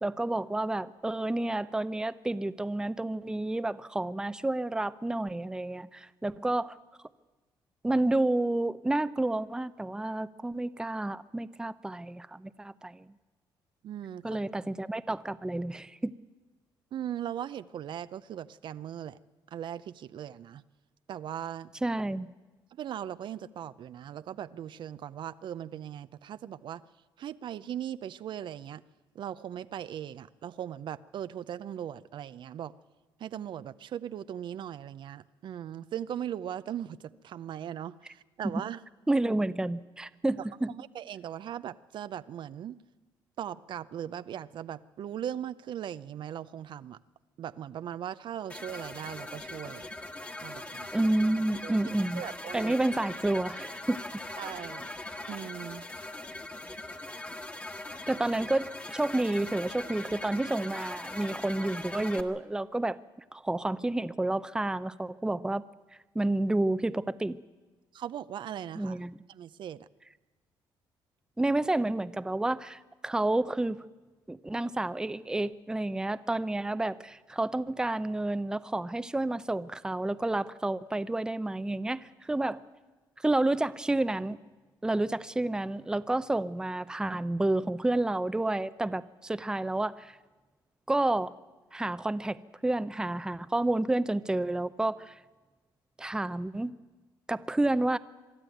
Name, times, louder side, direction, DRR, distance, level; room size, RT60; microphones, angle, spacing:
voice 1, 0.0-6.8 7.8-13.0 14.2-16.1 21.8-22.3 38.5-38.6 39.1-40.7 50.9-52.2 52.5-54.0 58.1-58.7 58.9-63.0 63.3-65.6 66.1-67.4 68.7-69.1 71.4-73.8 74.3-82.6 83.2-84.4 84.8-90.2 90.9-91.3 91.7-95.2 96.0-96.7 97.3-98.0, right 2 dB, 10° right, 14 dB, 0.6 m, -30 dB
voice 2, 13.8-14.4 16.9-19.2 19.5-20.6 21.1-21.7 22.7-26.8 27.2-28.8 29.1-32.7 33.2-38.8 40.7-42.8 43.4-47.0 47.4-49.9 50.4-50.9 51.6-51.8 52.1-52.7 54.4-54.9 55.3-55.8 67.9-69.0 69.3-69.9, right 10 dB, 65° right, 14 dB, 0.6 m, -39 dB
sound 1, 48.5-62.2, left 2 dB, 15° left, 1.5 m, -41 dB
23.5 x 12.5 x 9.2 m, 1.2 s
cardioid pair, 100°, 9 cm